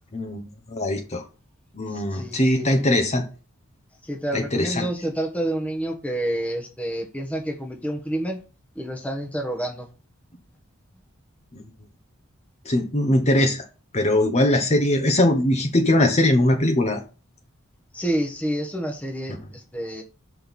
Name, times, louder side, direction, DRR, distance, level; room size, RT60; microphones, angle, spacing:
voice 1, 0.7-1.2 1.7-3.2 4.3-4.9 11.5-11.6 12.6-13.7 13.9-17.0, left 1 dB, 30° left, 4 dB, 1.0 m, -21 dB
voice 2, 1.9-2.8 4.1-8.4 8.7-9.9 17.9-20.0, right 1 dB, 5° left, 2 dB, 1.2 m, -29 dB
6.0 x 4.5 x 5.3 m, 0.33 s
head